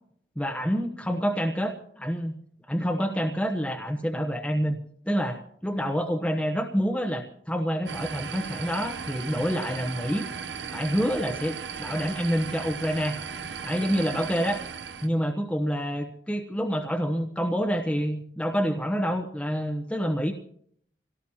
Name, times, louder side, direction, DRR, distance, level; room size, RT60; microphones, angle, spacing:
voice 1, 0.4-2.3 2.7-4.8 5.1-10.2 10.7-13.2 13.6-14.6 15.0-20.3, equal, 5° left, 1 dB, 0.9 m, -27 dB
sound 1, 7.9-15.1, right 6 dB, 85° right, 0.8 m, -36 dB
26.0 x 17.5 x 2.9 m, 0.64 s
head